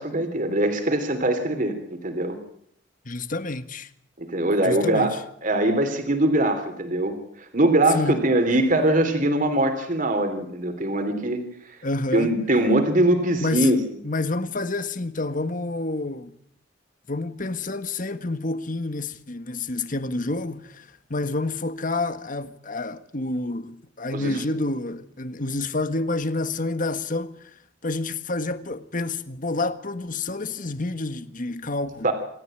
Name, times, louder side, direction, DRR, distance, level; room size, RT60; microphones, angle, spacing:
voice 1, 0.0-2.4 4.2-7.1 7.5-11.4 11.7-11.8 12.1-13.8 24.1-24.3 32.0-32.1, right 1 dB, 45° right, 3.3 m, -22 dB
voice 2, 3.0-3.9 4.6-5.2 7.9-8.2 11.8-12.4 13.4-13.7 14.0-16.3 17.1-32.1, left 2 dB, 45° left, 1.6 m, -29 dB
27.5 x 13.5 x 9.0 m
head